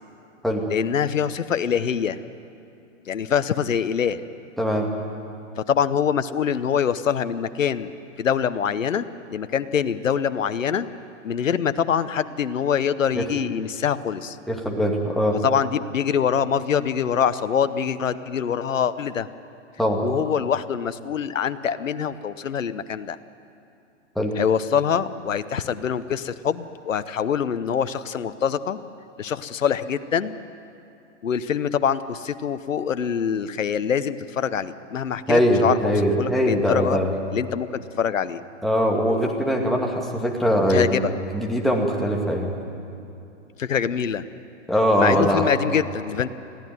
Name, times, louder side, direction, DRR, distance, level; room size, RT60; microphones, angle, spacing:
voice 1, 0.7-2.2 3.1-4.2 5.6-7.9 8.2-9.0 9.3-10.9 11.2-14.4 15.4-19.3 20.0-23.2 24.4-28.8 29.2-30.4 31.2-35.8 36.2-37.0 37.3-37.7 38.0-38.4 40.7-41.1 43.6-44.2 45.0-46.3, left 7 dB, 85° left, 13 dB, 0.9 m, -24 dB
voice 2, 4.6-4.9 13.1-13.2 14.5-15.4 19.8-20.0 24.2-24.3 35.3-37.1 38.6-41.0 41.3-42.5 44.7-45.5, equal, ahead, -1 dB, 2.2 m, -21 dB
22.5 x 15.5 x 9.4 m, 2.8 s
hypercardioid pair, 130°, 38 cm